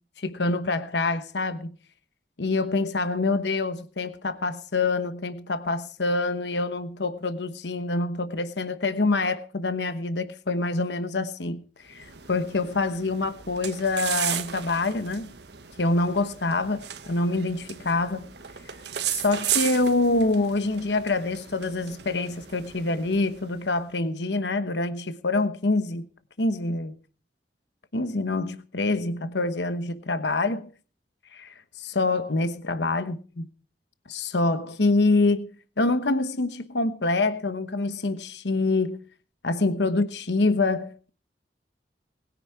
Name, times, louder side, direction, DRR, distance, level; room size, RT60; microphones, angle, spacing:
voice 1, 0.2-1.7 2.4-15.3 15.8-18.3 19.1-26.0 26.4-26.9 27.9-30.7 31.3-33.4 34.1-35.5 35.8-39.0 39.4-41.1, left 2 dB, 70° left, 1.1 m, -26 dB
sound 1, 11.9-23.7, right 10 dB, 65° right, 1.5 m, -35 dB
20.5 x 10.0 x 4.8 m
head